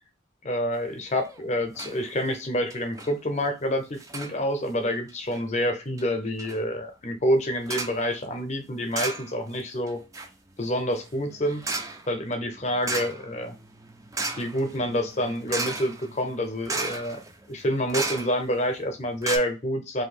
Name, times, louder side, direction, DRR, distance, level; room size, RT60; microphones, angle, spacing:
voice 1, 0.4-10.0 10.6-11.6 12.1-13.5 14.4-17.2 17.5-20.0, equal, 35° left, 6 dB, 0.6 m, -27 dB
sound 1, 1.1-1.4 1.7-2.0 2.3-2.4 2.7-3.1 4.0-4.4 5.1-5.4 6.0-6.1 6.4-6.6 7.7-8.0 8.9-9.6 9.9-18.6 18.9-19.0 19.2-19.4, right 3 dB, 15° right, 0.3 m, -35 dB
2.7 x 2.7 x 4.1 m, 0.28 s
head